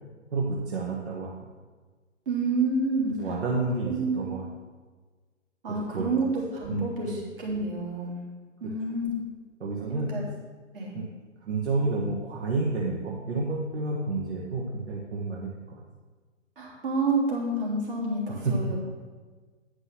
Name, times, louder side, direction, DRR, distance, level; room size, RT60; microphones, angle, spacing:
voice 1, 0.3-1.3 3.2-4.4 5.7-6.1 6.7-7.2 9.6-10.1 10.9-11.1 11.4-15.8 18.4-18.7, right 3 dB, 60° right, -3 dB, 1.7 m, -30 dB
voice 2, 2.3-3.1 3.5-4.4 5.6-8.2 8.6-9.1 9.9-10.2 10.7-10.9 16.6-18.9, right 3 dB, 45° right, -5 dB, 3.4 m, -29 dB
10.0 x 5.4 x 6.0 m, 1.4 s
figure-of-eight pair, 140°, 37 cm